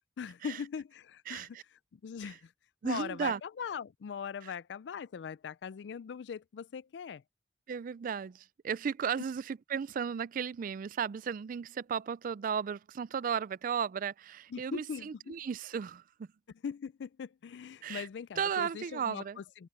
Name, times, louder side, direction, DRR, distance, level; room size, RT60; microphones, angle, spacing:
voice 1, 0.2-1.6 1.9-2.5 2.8-7.2 14.5-15.3 16.6-19.7, left 7 dB, 70° left, 0.4 m, -41 dB
voice 2, 1.3-1.6 2.2-2.4 2.8-3.4 4.4-4.5 7.7-16.3 17.8-18.1 18.4-19.4, right 7 dB, 50° right, 0.3 m, -35 dB
head